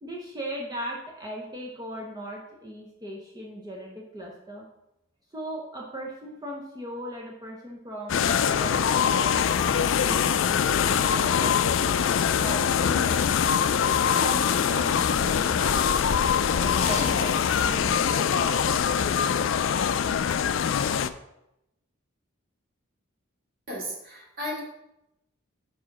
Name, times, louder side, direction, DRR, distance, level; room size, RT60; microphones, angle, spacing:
voice 1, 0.0-4.7 5.3-11.9 12.4-16.1 16.6-18.9, equal, 20° right, -2 dB, 0.8 m, -38 dB
sound 1, 8.1-21.1, left 7 dB, 65° left, 0.3 m, -23 dB
sound 2, 16.7-17.7 18.1-18.3, left 3 dB, 30° left, 1.3 m, -35 dB
voice 2, 23.7-24.6, equal, 50° right, -4 dB, 2.4 m, -34 dB
4.9 x 4.9 x 5.9 m, 0.86 s
head